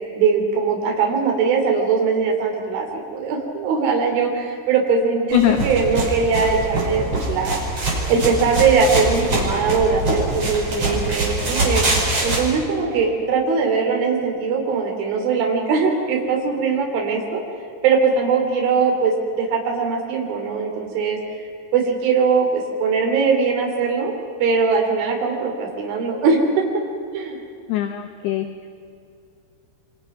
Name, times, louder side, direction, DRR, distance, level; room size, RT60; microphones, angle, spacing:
voice 1, 0.1-7.6 8.1-11.9 12.2-17.4 17.8-21.2 21.7-24.1 24.4-26.7 27.1-27.4, right 5 dB, 70° right, 1 dB, 5.6 m, -20 dB
voice 2, 5.3-5.6 27.7-28.5, left 13 dB, 70° left, 6 dB, 2.7 m, -21 dB
sound 1, 5.3-12.4, right 2 dB, 30° right, 6.4 m, -24 dB
28.5 x 25.5 x 6.0 m, 2.5 s
omnidirectional pair, 5.7 m